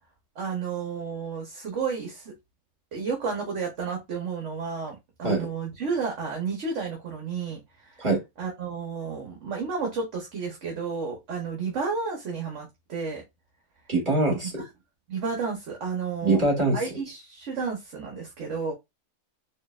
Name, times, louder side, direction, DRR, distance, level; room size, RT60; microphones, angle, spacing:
voice 1, 0.4-2.3 2.9-8.0 8.4-13.2 14.6-14.7 15.1-16.4 16.7-18.7, right 5 dB, 55° right, 1.1 m, -32 dB
voice 2, 13.9-14.5 16.2-16.8, right 2 dB, 30° right, 2.2 m, -23 dB
4.4 x 2.7 x 2.3 m
omnidirectional pair, 1.7 m